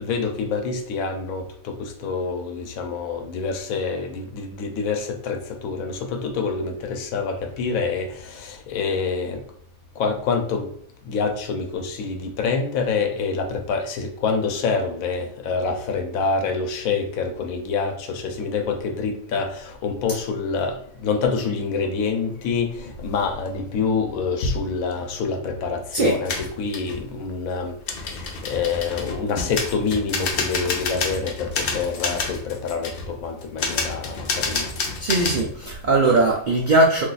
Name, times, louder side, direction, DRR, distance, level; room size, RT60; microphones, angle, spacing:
voice 1, 0.0-9.4 10.0-10.7 11.0-20.8 21.0-27.7 28.5-34.7, left 5 dB, 85° left, 5 dB, 1.0 m, -26 dB
sound 1, 26.2-27.0 27.9-35.5, left 4 dB, 55° left, 0.7 m, -28 dB
voice 2, 35.0-37.0, right 2 dB, 85° right, -1 dB, 0.4 m, -19 dB
2.6 x 2.3 x 3.9 m, 0.63 s
omnidirectional pair, 1.4 m